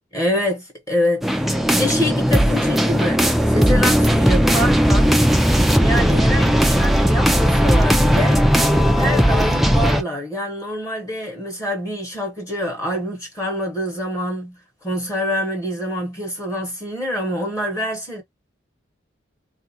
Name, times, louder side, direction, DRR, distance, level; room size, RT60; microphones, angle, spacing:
voice 1, 0.1-5.1 5.8-8.4 9.0-14.6 14.8-18.2, left 1 dB, 15° left, 1.0 m, -26 dB
sound 1, 1.2-10.0, equal, ahead, 0.3 m, -16 dB
3.4 x 2.5 x 2.7 m
head